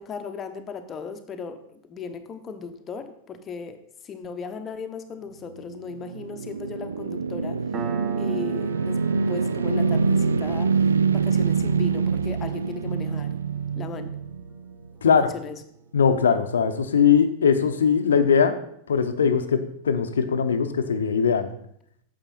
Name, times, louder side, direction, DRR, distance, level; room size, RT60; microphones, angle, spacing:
voice 1, 0.0-7.9 8.2-9.0 9.3-13.4 13.8-14.2 15.0-15.6, left 5 dB, 25° left, 8 dB, 0.9 m, -37 dB
sound 1, 5.6-14.9, right 5 dB, 75° right, 0.3 m, -25 dB
Piano, 7.7-14.9, right 7 dB, 25° right, 1.0 m, -41 dB
voice 2, 15.9-18.5 18.9-21.5, left 6 dB, 70° left, 9 dB, 0.8 m, -20 dB
9.0 x 7.1 x 4.2 m, 0.71 s
figure-of-eight pair, 90°, 0 cm